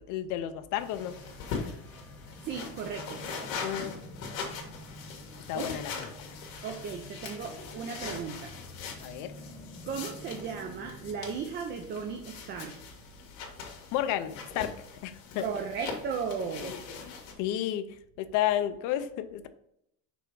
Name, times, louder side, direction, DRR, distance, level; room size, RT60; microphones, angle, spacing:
voice 1, 0.1-1.2 3.6-4.0 5.5-5.9 6.2-6.3 9.0-9.3 13.9-15.5 16.6-16.8 17.4-19.5, left 11 dB, 55° left, 10 dB, 0.6 m, -32 dB
sound 1, 0.8-17.3, left 5 dB, 75° left, 1.8 m, -42 dB
sound 2, 0.8-11.5, left 1 dB, 5° left, 0.8 m, -50 dB
voice 2, 2.4-3.2 5.5-5.7 6.6-8.5 9.9-12.7 15.4-16.8, right 6 dB, 30° right, 3 dB, 0.5 m, -36 dB
6.0 x 3.4 x 4.7 m, 0.76 s
cardioid pair, 170°, 37 cm